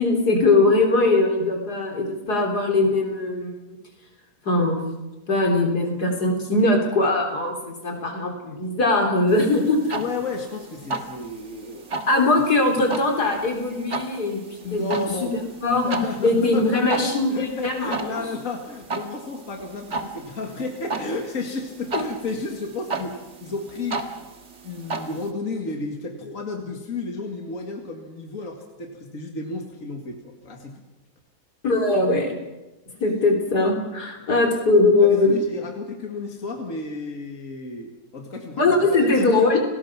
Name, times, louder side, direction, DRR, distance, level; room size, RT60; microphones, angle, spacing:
voice 1, 0.0-3.6 4.5-4.8 5.3-9.9 12.1-14.4 14.7-15.1 15.6-16.0 16.2-18.3 21.9-22.0 31.6-32.3 33.0-35.4 38.6-39.6, left 2 dB, 85° left, 2 dB, 4.1 m, -21 dB
sound 1, 9.3-25.3, right 3 dB, 50° right, 2.1 m, -35 dB
voice 2, 9.9-11.9 14.6-15.4 15.8-24.0 24.6-30.8 35.0-39.7, left 3 dB, 55° left, 2 dB, 2.5 m, -32 dB
30.0 x 18.5 x 6.0 m, 1.1 s
omnidirectional pair, 1.7 m